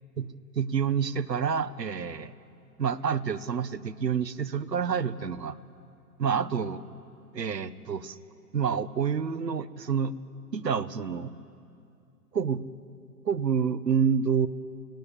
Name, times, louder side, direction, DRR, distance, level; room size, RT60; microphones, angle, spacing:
voice 1, 0.2-2.3 2.8-5.6 6.2-6.8 7.3-8.2 8.5-10.1 10.5-11.3 12.3-12.6 13.2-14.5, right 7 dB, 85° right, 14 dB, 1.3 m, -28 dB
29.5 x 18.0 x 8.3 m, 2.4 s
hypercardioid pair, 130°, 48 cm